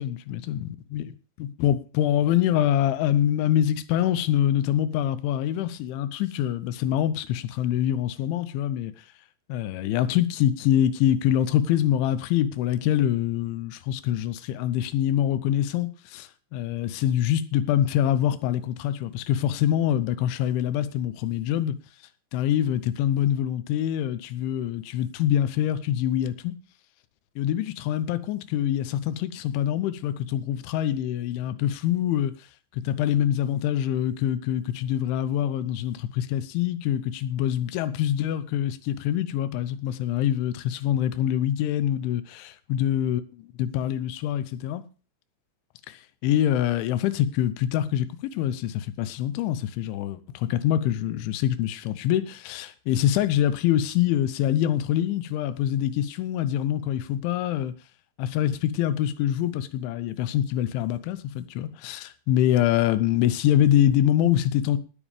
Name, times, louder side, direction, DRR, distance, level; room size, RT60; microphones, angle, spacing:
voice 1, 0.0-1.1 1.4-8.9 9.5-21.7 22.3-26.5 27.4-32.3 32.7-43.2 43.6-44.8 45.9-57.7 58.2-64.8, left 11 dB, 85° left, 3.2 m, -25 dB
18.5 x 7.3 x 4.9 m
omnidirectional pair, 5.4 m